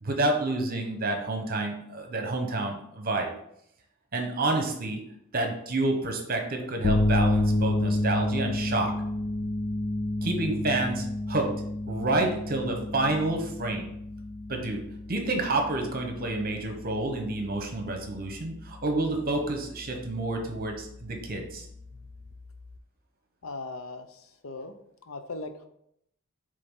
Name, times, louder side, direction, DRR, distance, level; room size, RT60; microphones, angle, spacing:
voice 1, 0.0-3.3 4.1-5.0 5.3-8.9 10.2-11.5 11.9-13.9 14.5-14.8 15.1-21.7, right 2 dB, 45° right, 3 dB, 1.0 m, -29 dB
sound 1, 6.8-22.8, left 1 dB, 35° left, 0.4 m, -31 dB
voice 2, 23.4-24.7 25.1-25.7, left 3 dB, 65° left, 7 dB, 0.7 m, -39 dB
7.6 x 3.3 x 3.8 m, 0.75 s
head